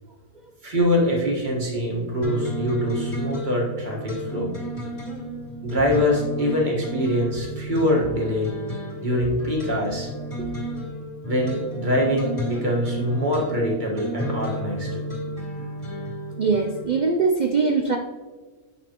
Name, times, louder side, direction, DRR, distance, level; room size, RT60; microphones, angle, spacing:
voice 1, 0.6-4.5 5.6-8.5 9.0-10.1 11.2-15.0, equal, 35° right, -2 dB, 1.7 m, -24 dB
sound 1, 2.2-17.0, equal, 30° left, 2.6 m, -32 dB
voice 2, 16.4-18.0, right 4 dB, 65° right, 3 dB, 0.4 m, -22 dB
8.6 x 6.0 x 3.0 m, 1.3 s
omnidirectional pair, 1.4 m